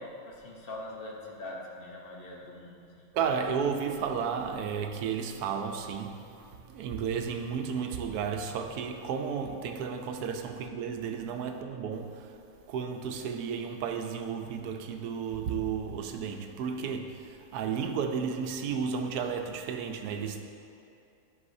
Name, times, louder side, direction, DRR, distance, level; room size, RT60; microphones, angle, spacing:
voice 1, 0.0-3.1, left 1 dB, 45° left, 1.0 m, -43 dB
voice 2, 3.1-12.4 12.7-20.4, right 6 dB, 85° right, 1.1 m, -33 dB
11.0 x 5.5 x 2.6 m
omnidirectional pair, 1.6 m